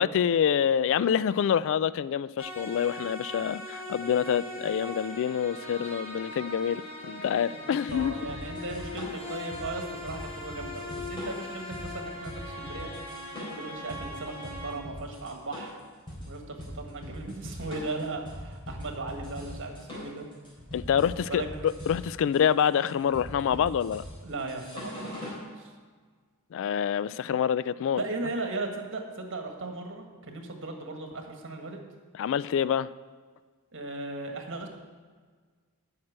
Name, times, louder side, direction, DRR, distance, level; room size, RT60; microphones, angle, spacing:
voice 1, 0.0-8.2 20.7-24.1 26.5-28.0 32.2-32.9, left 8 dB, 60° left, 18 dB, 0.3 m, -26 dB
sound 1, 2.4-14.8, left 1 dB, 90° left, 3.6 m, -40 dB
voice 2, 7.7-12.9 13.4-15.8 16.3-20.3 21.2-21.5 24.2-25.7 28.0-31.8 33.7-34.7, right 2 dB, 60° right, 3 dB, 1.6 m, -37 dB
sound 2, 7.9-25.4, equal, 25° left, 3.8 m, -41 dB
8.7 x 6.6 x 8.6 m, 1.5 s
head